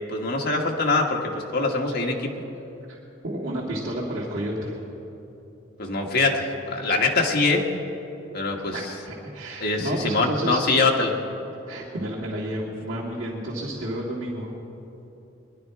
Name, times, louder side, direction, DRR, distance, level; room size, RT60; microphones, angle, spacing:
voice 1, 0.1-2.3 5.8-7.7 8.3-8.8 9.6-11.1, left 3 dB, 50° left, 1 dB, 1.5 m, -23 dB
voice 2, 3.2-4.8 8.7-10.6 11.7-14.5, right 1 dB, 80° right, -7 dB, 2.1 m, -31 dB
21.0 x 11.5 x 4.7 m, 3.0 s
head